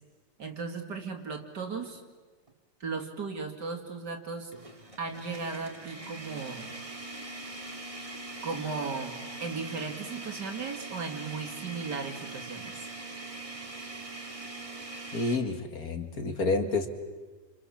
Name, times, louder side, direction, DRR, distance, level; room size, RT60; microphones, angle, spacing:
voice 1, 0.4-2.0 2.8-4.5 5.0-6.7 8.4-9.2 9.4-12.9 13.7-13.9, right 4 dB, 65° right, 3 dB, 3.1 m, -36 dB
sound 1, 1.8-2.0 2.5-2.6 4.5-15.4, right 2 dB, 15° right, 2.4 m, -42 dB
voice 2, 15.1-16.9, left 3 dB, 55° left, 6 dB, 2.4 m, -29 dB
29.0 x 26.5 x 7.3 m, 1.3 s
omnidirectional pair, 2.0 m